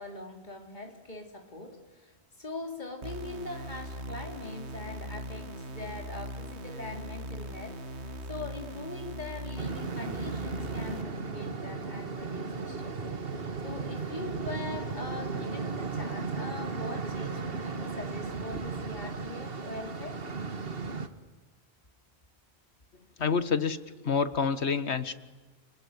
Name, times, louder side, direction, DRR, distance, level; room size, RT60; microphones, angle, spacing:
voice 1, 0.0-7.8 8.3-12.9 13.6-20.2, left 2 dB, 45° left, 3 dB, 3.5 m, -42 dB
sound 1, 3.0-11.0, equal, 85° right, 1.8 m, -40 dB
sound 2, 9.6-21.1, right 4 dB, 60° right, 1.8 m, -35 dB
voice 2, 23.2-23.8 24.0-25.2, left 5 dB, 85° left, 13 dB, 1.8 m, -27 dB
29.5 x 20.0 x 9.8 m, 1.3 s
omnidirectional pair, 1.1 m